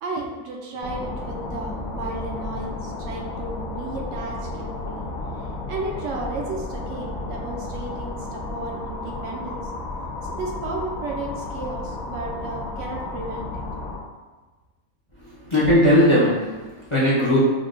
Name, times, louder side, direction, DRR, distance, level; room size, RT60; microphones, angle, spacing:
voice 1, 0.0-5.1 5.7-9.6 10.2-13.7, right 2 dB, 65° right, 0 dB, 0.9 m, -33 dB
sound 1, 0.8-14.0, left 2 dB, 75° left, 1.2 m, -33 dB
voice 2, 15.2-17.5, equal, 30° left, -8 dB, 0.5 m, -18 dB
6.0 x 2.2 x 2.5 m, 1.3 s
omnidirectional pair, 1.6 m